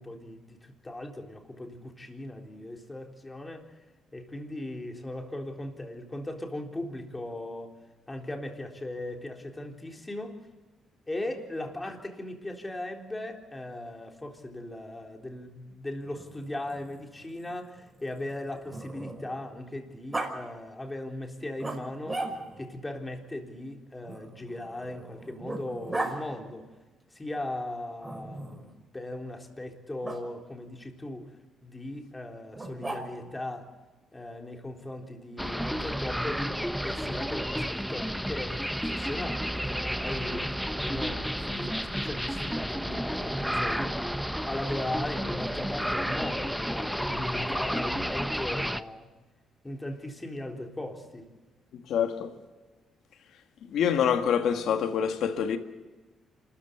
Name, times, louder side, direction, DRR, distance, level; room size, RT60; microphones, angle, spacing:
voice 1, 0.0-3.8 4.1-7.7 8.1-10.4 11.1-26.6 27.1-28.7 28.9-31.3 31.6-33.7 34.1-49.1 49.6-51.3, left 1 dB, 15° left, 3.8 m, -38 dB
Growling, 16.0-19.4 20.1-20.3 21.6-22.7 24.0-26.2 28.0-28.7 30.0-30.2 32.5-33.4, right 2 dB, 15° right, 5.5 m, -37 dB
sound 1, 35.4-48.8, equal, ahead, 0.9 m, -31 dB
voice 2, 51.7-52.3 53.6-55.6, left 8 dB, 75° left, 1.7 m, -26 dB
27.0 x 14.0 x 8.1 m
cardioid pair, 90°, 0 cm